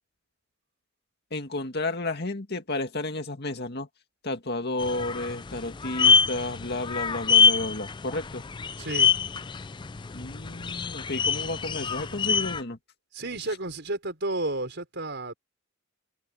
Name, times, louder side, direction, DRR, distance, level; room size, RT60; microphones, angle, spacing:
voice 1, 1.3-3.9 4.2-8.4 10.1-12.8, left 2 dB, 50° left, 2.1 m, -32 dB
sound 1, 4.8-12.6, left 6 dB, 20° left, 0.4 m, -25 dB
voice 2, 8.8-9.1 13.1-15.3, right 2 dB, 55° right, 5.6 m, -32 dB
head